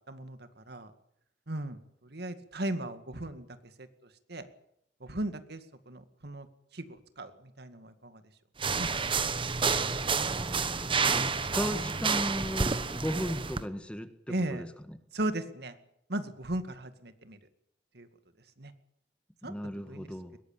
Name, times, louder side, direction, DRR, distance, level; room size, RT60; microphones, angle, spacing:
voice 1, 0.1-0.9 1.5-4.5 5.0-6.5 6.7-8.2 8.8-8.9 14.3-14.7 15.1-15.8 16.1-17.4 17.9-18.1 18.6-18.7 19.4-20.1, right 1 dB, 60° right, 10 dB, 2.1 m, -37 dB
sound 1, 8.6-13.6, right 5 dB, 30° right, 1.1 m, -29 dB
voice 2, 10.2-15.0 19.4-20.4, equal, 5° left, 10 dB, 1.5 m, -36 dB
22.0 x 18.0 x 9.0 m, 0.73 s
head